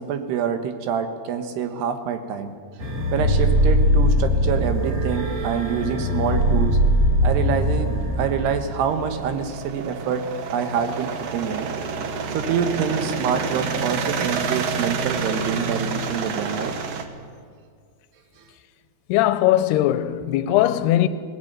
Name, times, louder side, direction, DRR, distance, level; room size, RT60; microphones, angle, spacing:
voice 1, 0.0-2.5 3.1-6.8 7.2-11.7 12.3-16.8, right 7 dB, 85° right, 3.4 m, -26 dB
sound 1, 2.8-9.5, equal, 40° right, 3.9 m, -21 dB
sound 2, 8.0-17.0, right 5 dB, 65° right, 1.7 m, -29 dB
voice 2, 19.1-21.1, left 13 dB, 85° left, 2.7 m, -19 dB
18.5 x 17.0 x 9.1 m
omnidirectional pair, 4.7 m